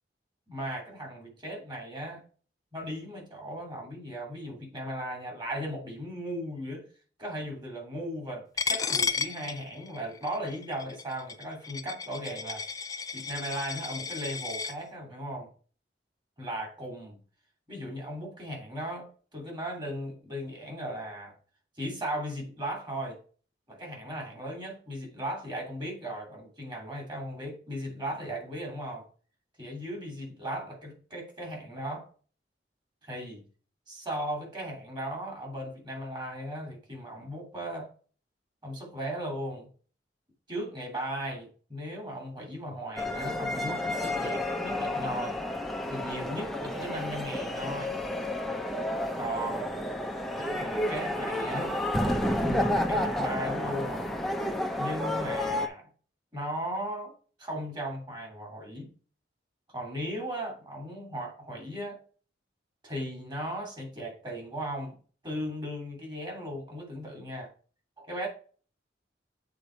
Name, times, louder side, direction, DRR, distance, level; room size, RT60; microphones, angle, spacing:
voice 1, 0.5-2.2 2.7-6.9 7.2-12.6 13.1-15.5 16.4-17.2 17.7-21.3 21.8-23.2 23.7-29.1 29.6-32.0 33.0-33.4 33.9-37.9 38.6-39.7 40.5-45.4 45.9-48.0 49.2-49.8 50.3-51.8 52.4-54.0 54.8-55.9 56.3-57.1 57.4-58.9 59.7-62.0 62.8-65.0 65.2-67.5 68.0-68.3, equal, 25° right, 2.7 m, -37 dB
Coin (dropping), 8.6-14.7, left 5 dB, 20° left, 0.3 m, -33 dB
sound 1, 43.0-55.7, left 1 dB, ahead, 0.7 m, -31 dB
7.8 x 4.0 x 4.5 m
head